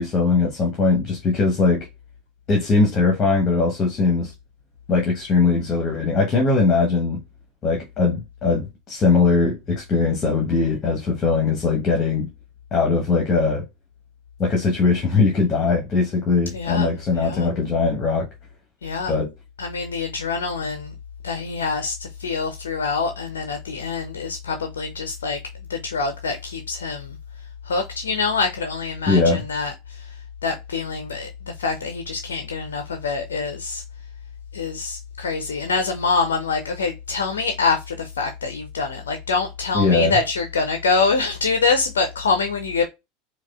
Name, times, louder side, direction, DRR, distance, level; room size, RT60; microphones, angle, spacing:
voice 1, 0.0-1.9 2.5-4.3 4.9-7.2 7.6-12.3 12.7-13.6 14.4-18.3 19.1-19.3 29.1-29.4 39.7-40.1, left 4 dB, 30° left, 1.0 m, -20 dB
voice 2, 16.5-16.9 17.1-17.5 18.8-19.1 19.6-20.9 21.2-25.4 25.7-27.2 27.7-30.1 30.4-31.3 31.6-33.8 34.5-42.9, left 4 dB, 75° left, 0.5 m, -25 dB
4.7 x 2.3 x 2.3 m
figure-of-eight pair, 80°, 0 cm